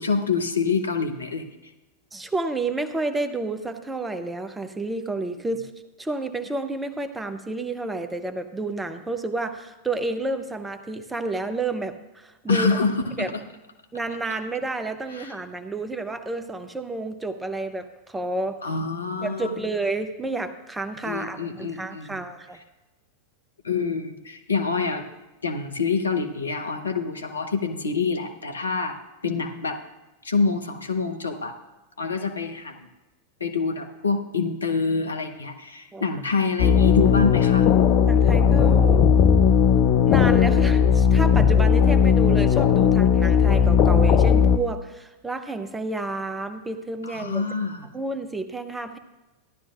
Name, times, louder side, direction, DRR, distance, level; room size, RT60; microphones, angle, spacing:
voice 1, 0.0-1.5 12.5-13.4 15.1-15.3 18.6-19.6 21.0-22.2 23.6-25.0 25.4-29.0 29.2-29.8 30.2-31.5 32.0-32.7 33.4-37.7 47.0-47.9, left 4 dB, 75° left, 5 dB, 0.9 m, -26 dB
voice 2, 2.1-5.7 6.0-12.9 13.2-13.3 13.9-18.6 19.2-22.6 35.9-36.0 38.0-39.1 40.1-47.5 47.9-49.0, right 2 dB, 10° right, 9 dB, 0.7 m, -30 dB
sound 1, 36.6-44.6, left 7 dB, 40° left, 0.5 m, -17 dB
14.5 x 11.0 x 2.5 m, 1.1 s
figure-of-eight pair, 90°, 0 cm